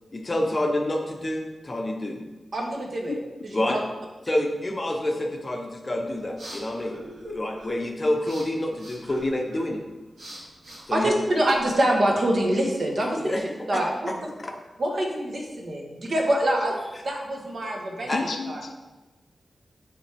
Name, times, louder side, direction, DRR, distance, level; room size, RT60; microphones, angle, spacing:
voice 1, 0.1-2.2 3.5-3.8 4.3-7.0 7.3-9.8 10.9-11.1 13.2-13.4 13.7-13.8 14.1-14.2 14.4-14.6 18.1-18.2, left 1 dB, 25° left, 2 dB, 0.7 m, -27 dB
voice 2, 2.5-3.2 3.5-3.8 4.3-4.4 10.9-13.3 13.7-14.1 14.8-16.7 17.0-18.6, right 1 dB, 50° right, 0 dB, 1.1 m, -25 dB
sound 1, 6.0-11.8, equal, 85° right, 1.8 m, -44 dB
voice 3, 18.1-18.7, left 4 dB, 65° left, 5 dB, 0.5 m, -31 dB
8.6 x 3.4 x 3.4 m, 1.1 s
wide cardioid pair, 135°, 0 cm